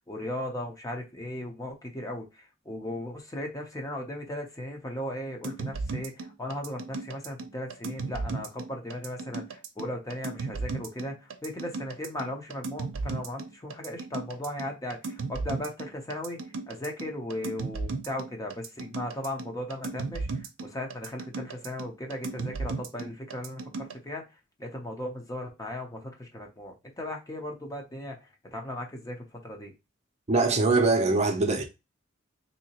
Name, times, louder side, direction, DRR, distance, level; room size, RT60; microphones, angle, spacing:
voice 1, 0.0-24.3 24.6-29.7, left 1 dB, 20° left, 0.7 m, -37 dB
sound 1, 5.4-23.9, right 3 dB, 75° right, 0.6 m, -35 dB
voice 2, 30.3-31.6, right 3 dB, 35° right, 0.6 m, -23 dB
3.7 x 2.8 x 2.8 m
head